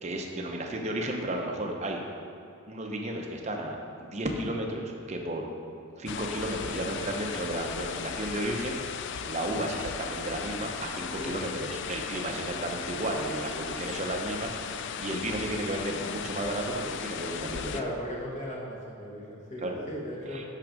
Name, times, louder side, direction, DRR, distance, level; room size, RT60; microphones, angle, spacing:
voice 1, 0.0-2.0 2.7-5.5 6.0-8.8 9.2-17.8 19.6-19.8 20.3-20.4, right 1 dB, 30° right, 1 dB, 0.7 m, -33 dB
sound 1, 6.1-17.8, left 7 dB, 55° left, 0.3 m, -37 dB
voice 2, 11.2-11.5 17.7-20.4, equal, 35° left, -3 dB, 1.3 m, -37 dB
6.1 x 5.9 x 5.1 m, 2.7 s
head